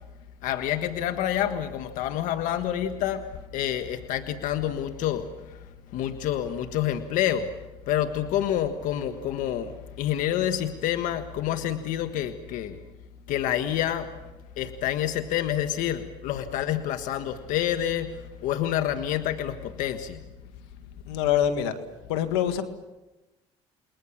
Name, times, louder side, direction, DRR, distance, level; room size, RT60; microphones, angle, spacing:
voice 1, 0.4-7.5 7.9-12.8 13.3-14.1 14.6-20.2, left 11 dB, 75° left, 8 dB, 1.5 m, -28 dB
voice 2, 21.0-21.8 22.1-22.6, left 10 dB, 90° left, 9 dB, 1.9 m, -24 dB
29.0 x 21.0 x 7.3 m, 1.1 s
supercardioid pair, 75°, 14 cm